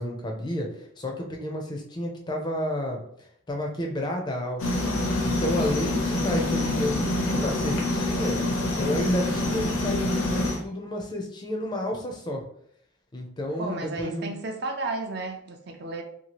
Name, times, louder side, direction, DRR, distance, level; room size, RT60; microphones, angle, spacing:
voice 1, 0.0-4.7 5.2-8.4 8.8-12.4 13.1-14.3, left 1 dB, 20° left, 1 dB, 0.4 m, -31 dB
sound 1, 4.6-10.6, left 1 dB, 85° left, 0.7 m, -26 dB
voice 2, 13.6-16.0, right 2 dB, 50° right, 4 dB, 0.4 m, -33 dB
2.8 x 2.3 x 2.9 m, 0.67 s
head